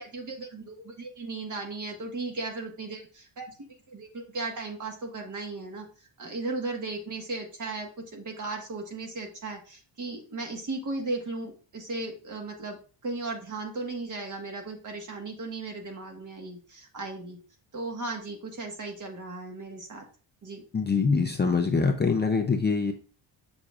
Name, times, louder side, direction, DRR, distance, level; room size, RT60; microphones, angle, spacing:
voice 1, 0.0-3.6 3.9-5.9 6.2-17.4 17.7-20.0 20.4-20.6, right 3 dB, 40° right, 2 dB, 1.6 m, -36 dB
voice 2, 20.7-22.9, left 4 dB, 25° left, 2 dB, 0.5 m, -24 dB
7.2 x 6.5 x 2.5 m, 0.38 s
wide cardioid pair, 150°, 47 cm